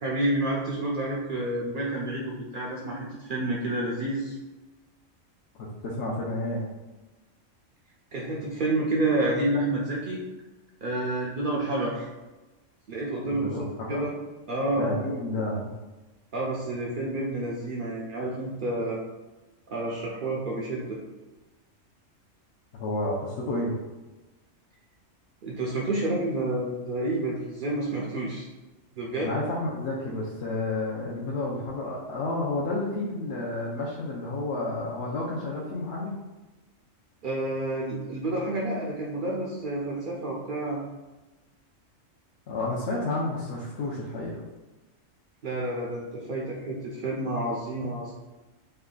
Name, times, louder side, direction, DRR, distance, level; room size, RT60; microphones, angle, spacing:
voice 1, 0.0-4.4 8.1-10.2 10.8-12.1 12.9-14.1 14.5-14.9 16.3-19.0 19.7-21.0 25.4-28.5 29.0-29.3 37.2-40.8 45.4-48.1, right 2 dB, 65° right, -3 dB, 0.5 m, -29 dB
voice 2, 5.6-6.7 13.3-14.1 14.8-15.7 22.7-23.7 29.2-36.2 42.5-44.4, left 2 dB, 65° left, -5 dB, 0.8 m, -30 dB
3.3 x 2.2 x 3.7 m, 1.1 s
omnidirectional pair, 1.3 m